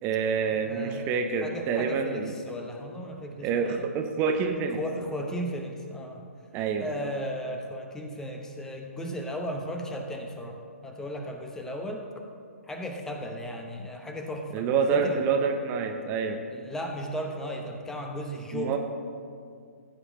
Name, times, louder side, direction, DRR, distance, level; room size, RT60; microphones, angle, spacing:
voice 1, 0.0-2.3 3.4-4.8 6.5-6.9 14.5-16.4 18.5-18.8, right 5 dB, 25° right, 5 dB, 0.8 m, -27 dB
voice 2, 0.6-1.1 1.4-3.8 4.7-6.2 6.8-12.1 12.7-15.2 16.5-18.8, equal, 5° left, 2 dB, 0.8 m, -35 dB
14.5 x 5.0 x 7.3 m, 2.3 s
figure-of-eight pair, 135°, 8 cm